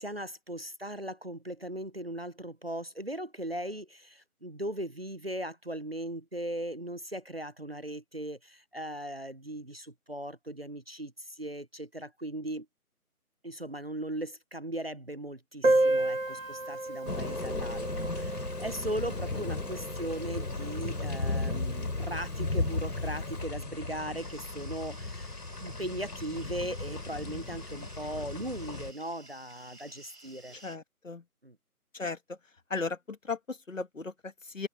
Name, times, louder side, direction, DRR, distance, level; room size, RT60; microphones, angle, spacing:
voice 1, 0.0-12.7 13.4-25.3 25.6-30.6 31.4-31.6, right 1 dB, 40° right, 0.8 m, -38 dB
Piano, 15.6-21.0 21.3-21.4 21.6-21.7 22.1-22.2 22.9-23.1, right 2 dB, 60° right, 1.3 m, -31 dB
sound 1, 17.1-28.9, left 2 dB, 85° left, 6.6 m, -35 dB
sound 2, 24.2-30.8, right 2 dB, 80° right, 6.9 m, -55 dB
voice 2, 30.6-31.2 31.9-32.4 32.7-34.7, left 4 dB, 55° left, 2.3 m, -36 dB
figure-of-eight pair, 180°, 45 cm